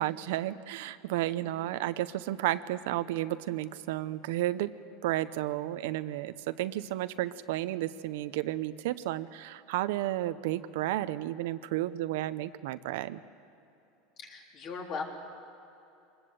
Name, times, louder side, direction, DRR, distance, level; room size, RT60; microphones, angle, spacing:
voice 1, 0.0-4.7 5.0-13.2, right 15 dB, 75° right, 13 dB, 0.7 m, -32 dB
voice 2, 1.4-1.9 14.2-15.0, left 5 dB, 40° left, 1 dB, 3.6 m, -40 dB
24.5 x 20.5 x 8.0 m, 2.9 s
supercardioid pair, 150°, 0 cm